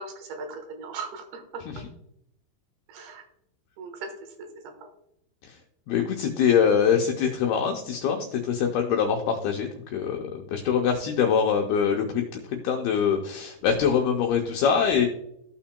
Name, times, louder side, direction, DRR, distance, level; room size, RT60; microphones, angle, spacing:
voice 1, 0.0-1.6 2.9-3.2 3.8-4.1 4.4-4.9, right 4 dB, 70° right, 5 dB, 2.9 m, -38 dB
voice 2, 5.9-10.2 10.5-12.2 12.6-15.1, left 7 dB, 90° left, 2 dB, 2.2 m, -24 dB
15.0 x 5.8 x 2.2 m, 0.76 s
omnidirectional pair, 5.4 m